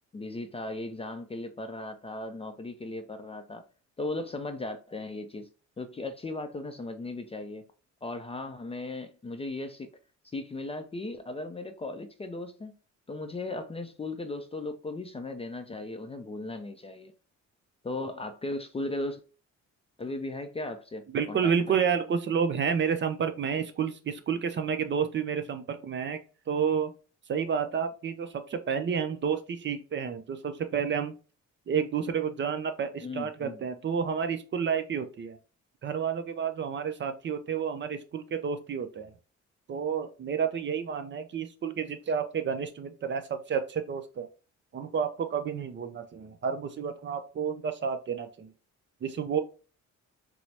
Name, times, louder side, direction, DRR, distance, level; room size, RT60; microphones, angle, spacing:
voice 1, 0.1-3.6 4.0-5.5 5.8-7.6 8.0-9.9 10.3-12.7 13.1-17.1 17.8-19.2 20.0-21.7 33.0-33.6, left 2 dB, 20° left, 0.4 m, -37 dB
voice 2, 21.1-26.2 26.5-26.9 27.3-31.2 31.7-35.4 35.8-39.1 39.7-44.3 44.7-48.5 49.0-49.4, right 7 dB, 40° right, 0.5 m, -30 dB
4.5 x 2.0 x 2.7 m
cardioid pair, 90°, 30 cm